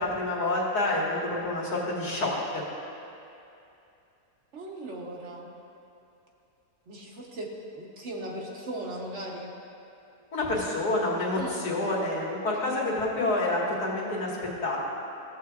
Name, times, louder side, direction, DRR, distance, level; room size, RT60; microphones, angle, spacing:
voice 1, 0.0-2.6 10.3-14.8, left 2 dB, 80° left, -5 dB, 2.4 m, -28 dB
voice 2, 4.5-5.5 6.9-9.5 11.3-11.6, right 1 dB, 50° right, -1 dB, 1.1 m, -38 dB
16.0 x 7.8 x 2.4 m, 2.7 s
omnidirectional pair, 1.7 m